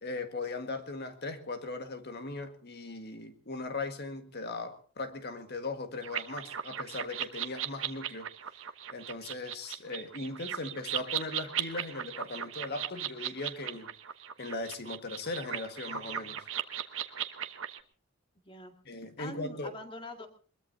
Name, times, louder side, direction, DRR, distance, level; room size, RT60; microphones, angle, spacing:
voice 1, 0.0-8.3 8.9-13.9 14.4-16.5 18.9-19.7, left 3 dB, 55° left, 7 dB, 1.8 m, -38 dB
sound 1, 6.0-17.8, right 10 dB, 80° right, 1.1 m, -37 dB
voice 2, 18.5-20.3, left 2 dB, 25° left, 4 dB, 2.2 m, -44 dB
22.0 x 22.0 x 2.8 m, 0.39 s
head